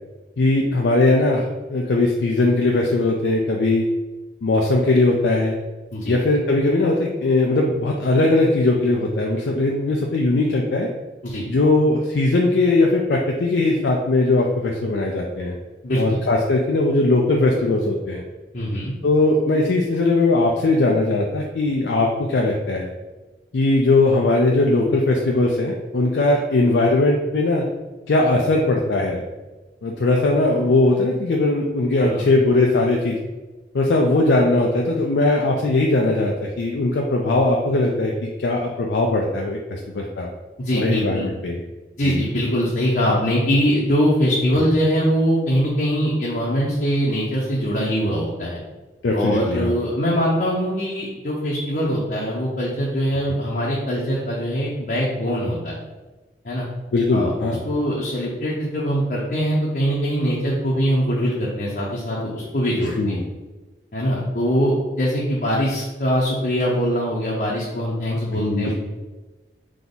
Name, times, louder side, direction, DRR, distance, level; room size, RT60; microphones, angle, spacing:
voice 1, 0.4-3.8 4.4-5.5 6.1-10.9 11.5-15.6 16.0-18.2 19.0-22.9 23.5-27.7 28.1-29.2 29.8-33.2 33.7-40.3 40.7-41.6 42.0-42.2 49.0-49.8 56.9-57.6 63.0-63.2 68.3-68.7, left 2 dB, 80° left, 0 dB, 0.4 m, -19 dB
voice 2, 15.8-16.2 18.5-18.9 32.0-32.2 40.6-41.3 42.0-48.6 49.1-55.8 56.4-56.7 57.1-57.3 57.6-63.2 63.9-68.7, equal, 50° left, -5 dB, 0.7 m, -22 dB
3.6 x 2.9 x 3.9 m, 1.2 s
head